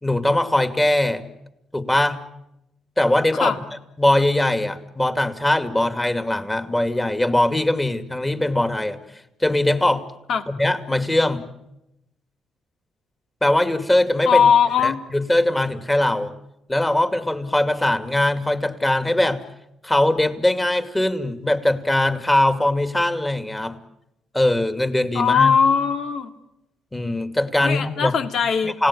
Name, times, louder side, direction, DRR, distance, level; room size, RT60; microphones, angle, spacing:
voice 1, 0.0-1.2 1.7-2.2 3.0-3.5 4.0-9.0 9.4-10.0 10.5-11.4 13.4-14.5 14.8-16.3 16.7-19.4 19.8-23.8 24.3-25.6 26.9-28.1 28.6-28.9, left 1 dB, 15° left, 8 dB, 2.4 m, -21 dB
voice 2, 14.3-15.0 25.1-26.3 27.6-28.8, left 7 dB, 70° left, 6 dB, 2.4 m, -19 dB
29.5 x 17.5 x 10.0 m, 0.89 s
cardioid pair, 90°, 0 cm